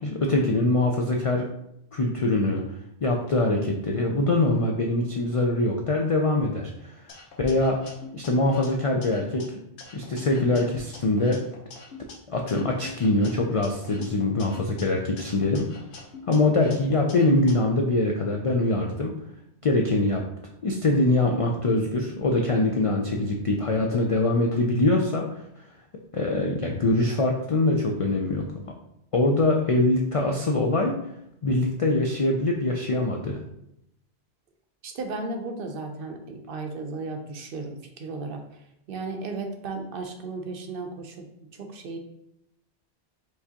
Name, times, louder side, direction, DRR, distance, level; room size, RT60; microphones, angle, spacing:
voice 1, 0.0-1.5 1.9-2.6 3.0-7.0 7.4-7.8 8.1-9.6 9.9-11.4 12.3-15.6 16.3-19.1 19.6-20.2 20.6-25.4 26.1-28.5 29.1-31.0 31.4-33.4, left 2 dB, 60° left, 1 dB, 0.3 m, -23 dB
sound 1, 7.1-9.4 9.8-12.1 12.5-14.8 15.2-17.5, left 4 dB, 85° left, 1.1 m, -44 dB
voice 2, 34.8-38.4 38.9-41.3 41.6-42.0, right 3 dB, 60° right, 4 dB, 0.7 m, -34 dB
4.7 x 3.4 x 2.8 m, 0.80 s
omnidirectional pair, 1.1 m